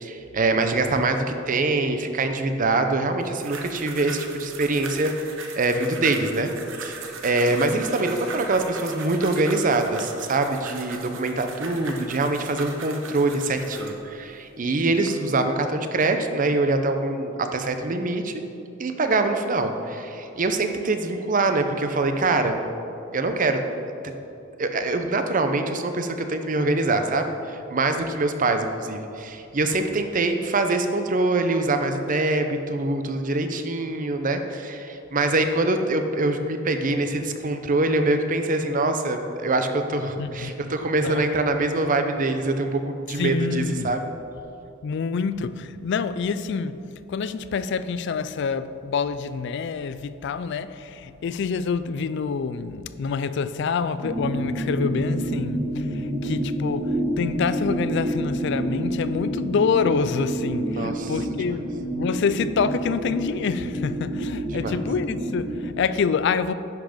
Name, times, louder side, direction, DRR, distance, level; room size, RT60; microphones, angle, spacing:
voice 1, 0.0-6.5 6.8-7.0 7.2-18.3 18.8-22.6 23.1-23.6 24.0-24.1 24.6-44.0 60.7-61.1 64.5-64.7, right 2 dB, 45° right, 0.7 m, -24 dB
sound 1, 3.2-14.0 14.6-15.1, right 4 dB, 85° right, 1.1 m, -38 dB
voice 2, 40.2-40.7 41.0-41.2 43.2-43.9 44.8-46.8 47.1-61.6 61.9-66.5, left 5 dB, 65° left, 0.3 m, -27 dB
sound 2, 54.0-65.7, right 1 dB, 65° right, 2.4 m, -28 dB
10.5 x 6.0 x 5.0 m
head